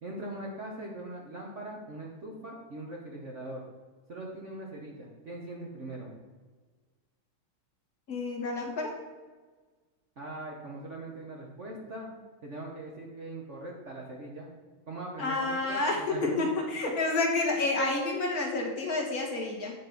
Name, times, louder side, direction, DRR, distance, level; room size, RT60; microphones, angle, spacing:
voice 1, 0.0-3.6 4.1-6.1 10.2-12.1 12.4-14.5 14.9-16.5, right 2 dB, 45° right, -1 dB, 1.0 m, -41 dB
voice 2, 8.1-9.0 15.2-19.7, left 3 dB, 50° left, 0 dB, 1.5 m, -29 dB
8.4 x 4.3 x 5.8 m, 1.4 s
omnidirectional pair, 2.3 m